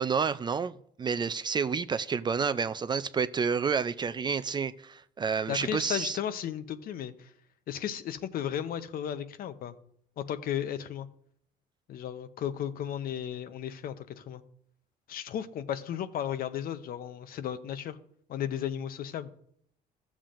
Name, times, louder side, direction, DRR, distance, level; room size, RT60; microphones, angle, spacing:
voice 1, 0.0-6.2, right 6 dB, 25° right, 0.3 m, -29 dB
voice 2, 5.5-7.3 7.7-9.7 10.2-11.1 11.9-14.4 15.1-18.0 18.3-19.3, left 10 dB, 60° left, 0.7 m, -34 dB
13.5 x 7.3 x 2.5 m
cardioid pair, 110°, 17 cm